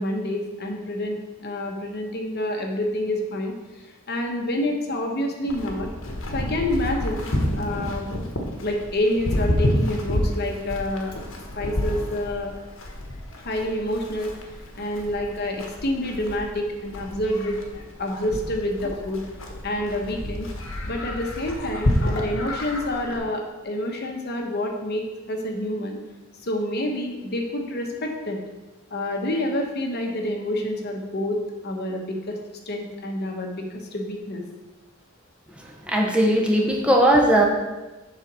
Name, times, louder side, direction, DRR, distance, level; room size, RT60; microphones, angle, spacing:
voice 1, 0.0-3.5 4.1-5.9 6.3-8.0 8.6-11.1 11.5-12.5 13.4-14.3 14.8-17.6 18.0-19.2 19.6-20.5 20.9-26.0 26.4-28.4 28.9-32.4 32.7-33.6 33.9-34.4, left 1 dB, 50° left, 2 dB, 1.1 m, -28 dB
Livestock farm animals working animals, 5.5-23.2, left 1 dB, 70° left, 1.2 m, -29 dB
voice 2, 35.9-37.5, right 1 dB, 5° right, 0 dB, 0.7 m, -18 dB
7.4 x 4.0 x 6.1 m, 1.1 s
head